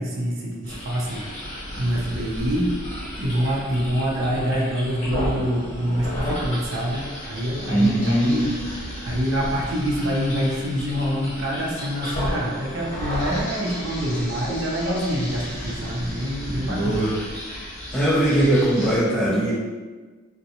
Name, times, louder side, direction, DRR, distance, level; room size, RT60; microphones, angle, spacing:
voice 1, 0.0-8.5 9.0-17.0, equal, 65° right, -2 dB, 0.5 m, -26 dB
sound 1, 0.6-19.0, equal, 35° left, 1.0 m, -33 dB
voice 2, 7.7-8.5 16.7-17.2 17.9-19.5, right 1 dB, 5° left, -7 dB, 0.4 m, -20 dB
2.5 x 2.1 x 2.8 m, 1.3 s
head